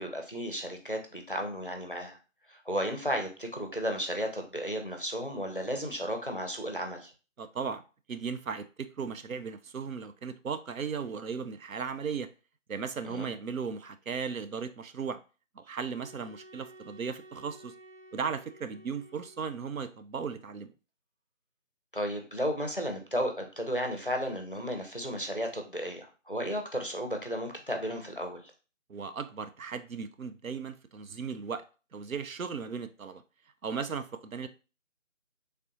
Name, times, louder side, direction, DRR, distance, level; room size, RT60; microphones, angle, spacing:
voice 1, 0.0-2.2 2.5-7.1 13.0-13.3 21.9-28.5, equal, 45° left, 0.5 m, -34 dB
voice 2, 7.4-7.8 8.1-12.3 12.7-15.2 15.6-17.7 18.1-20.7 28.9-31.6 31.9-33.2 33.6-34.5, right 6 dB, 85° right, 0.5 m, -36 dB
sound 1, 16.0-19.9, right 1 dB, 60° right, 1.2 m, -53 dB
3.2 x 2.4 x 2.8 m
figure-of-eight pair, 170°, 40 cm